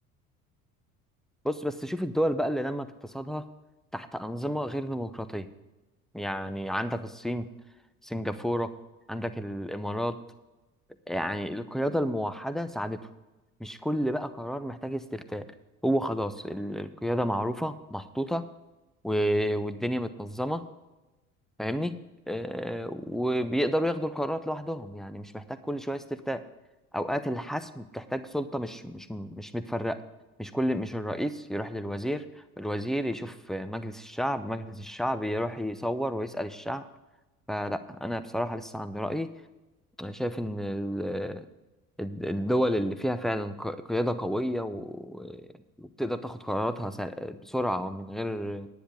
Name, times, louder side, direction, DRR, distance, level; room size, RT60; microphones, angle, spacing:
voice 1, 1.4-3.5 3.9-5.5 6.1-7.5 8.0-8.7 9.1-10.2 11.1-13.1 13.6-15.5 15.8-18.5 19.0-20.6 21.6-22.0 22.3-26.4 26.9-30.0 30.4-36.9 37.5-39.3 40.0-41.4 42.0-45.5 45.8-48.7, equal, ahead, 12 dB, 0.7 m, -31 dB
10.0 x 9.6 x 5.0 m, 1.1 s
figure-of-eight pair, 60°, 44 cm